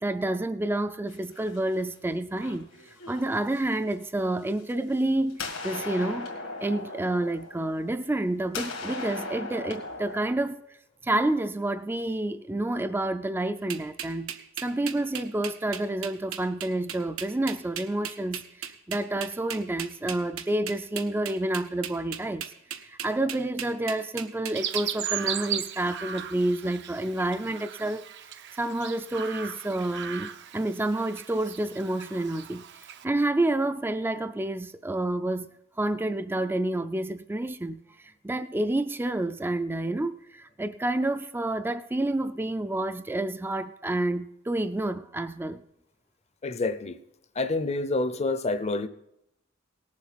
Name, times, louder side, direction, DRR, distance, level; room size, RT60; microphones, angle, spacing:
voice 1, 0.0-2.7 3.1-6.3 6.6-10.6 11.0-14.3 14.6-22.4 22.8-28.0 28.3-32.7 33.0-35.5 35.8-37.8 38.2-45.6, right 1 dB, 10° right, 0.3 m, -29 dB
sound 1, 1.1-2.0 2.4-3.9 4.6-5.0 5.3-8.2 8.5-10.2, left 3 dB, 85° left, 2.1 m, -38 dB
sound 2, 13.7-24.8, right 9 dB, 90° right, 0.8 m, -36 dB
Chirp tweet, 24.5-33.0, right 9 dB, 60° right, 0.6 m, -37 dB
voice 2, 46.4-47.0 47.4-48.9, left 3 dB, 35° left, 0.6 m, -27 dB
18.0 x 7.3 x 4.1 m
head